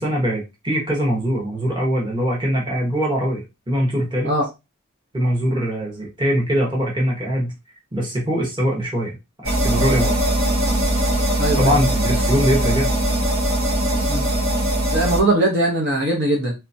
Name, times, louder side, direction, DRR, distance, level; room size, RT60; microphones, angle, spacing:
voice 1, 0.0-4.3 5.1-7.5 7.9-9.2 9.4-10.3 11.6-12.9, equal, 20° right, 1.2 m, -22 dB
sound 1, 9.4-15.2, right 1 dB, 75° right, 1.3 m, -20 dB
voice 2, 11.4-11.8 14.1-14.3 14.9-16.5, right 1 dB, 55° right, 1.0 m, -20 dB
3.4 x 2.9 x 2.7 m
head